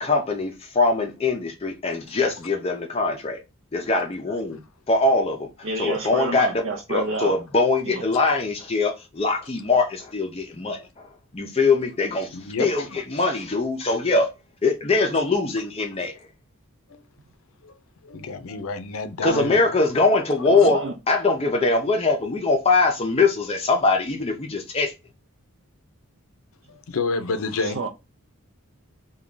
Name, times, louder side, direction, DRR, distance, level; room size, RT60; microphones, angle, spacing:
voice 1, 0.0-3.4 3.7-4.6 4.9-6.6 6.9-11.1 11.3-12.3 12.6-14.3 14.6-16.3 19.2-24.9, left 3 dB, 25° left, 0.5 m, -22 dB
voice 2, 5.6-7.4 7.8-8.0 20.5-20.9 27.6-27.9, right 3 dB, 60° right, 0.5 m, -29 dB
voice 3, 12.3-13.0 16.9-17.0 17.6-17.7 18.0-19.8 20.5-20.7 26.7-27.8, left 4 dB, 75° left, 0.5 m, -29 dB
3.4 x 2.3 x 3.7 m
head